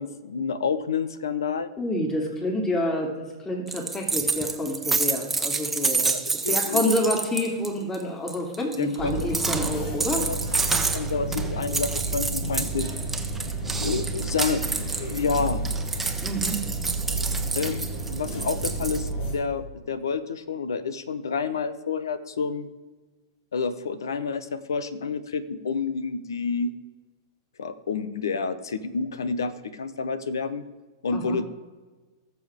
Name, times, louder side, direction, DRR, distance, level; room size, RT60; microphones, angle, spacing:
voice 1, 0.0-1.7 6.0-6.8 8.8-9.3 10.0-10.4 10.9-12.9 13.8-15.6 17.6-22.7 23.5-26.7 27.6-30.6 31.0-31.4, left 5 dB, 85° left, 14 dB, 0.9 m, -29 dB
voice 2, 1.8-6.1 6.5-10.3 16.2-16.6 31.1-31.4, left 1 dB, 20° left, 1 dB, 2.9 m, -28 dB
sound 1, 3.7-7.7 7.9-8.0 8.3-19.1, right 3 dB, 10° right, 1.1 m, -29 dB
sound 2, 9.0-19.3, right 2 dB, 55° left, 4.0 m, -31 dB
19.0 x 7.0 x 3.6 m, 1.3 s
hypercardioid pair, 115°, 2 cm